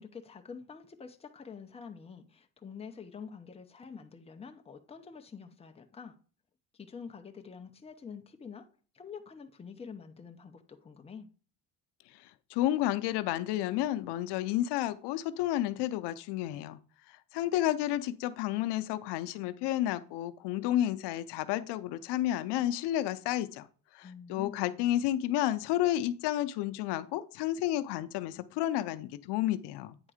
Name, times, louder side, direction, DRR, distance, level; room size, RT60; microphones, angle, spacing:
voice 1, 0.0-6.2 6.7-8.7 8.9-11.3 24.0-24.8, left 6 dB, 15° left, 0.7 m, -47 dB
voice 2, 12.5-16.8 17.3-23.7 23.9-30.0, left 13 dB, 80° left, 0.7 m, -31 dB
8.9 x 3.6 x 4.9 m
cardioid pair, 135°, 40 cm